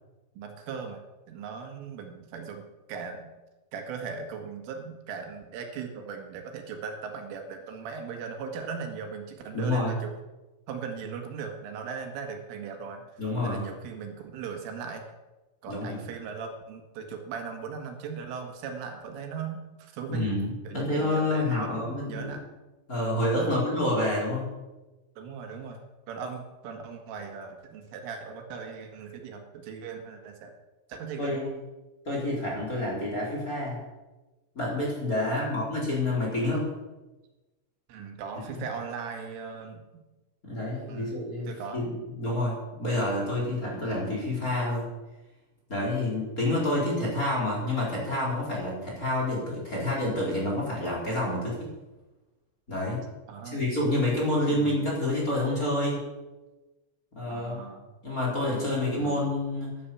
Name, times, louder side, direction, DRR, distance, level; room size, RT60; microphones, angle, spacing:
voice 1, 0.4-1.0 1.3-2.6 2.9-3.3 3.7-10.1 10.7-15.0 15.6-20.3 20.7-22.5 23.4-23.6 25.2-30.5 30.9-31.5 35.2-35.6 37.9-39.8 40.9-41.1 41.5-41.8 53.3-53.7 54.5-54.9 57.3-57.9 58.5-58.6 58.9-59.4, right 6 dB, 80° right, 3 dB, 4.2 m, -38 dB
voice 2, 9.5-9.9 13.2-13.6 15.7-16.0 20.1-20.5 20.7-22.3 22.9-24.4 31.2-31.6 32.1-33.8 34.5-36.7 40.4-44.9 45.7-51.6 52.7-53.0 53.5-56.0 57.1-57.6 58.0-59.7, left 1 dB, 20° left, -3 dB, 4.2 m, -28 dB
14.5 x 11.5 x 7.2 m, 1.1 s
omnidirectional pair, 5.7 m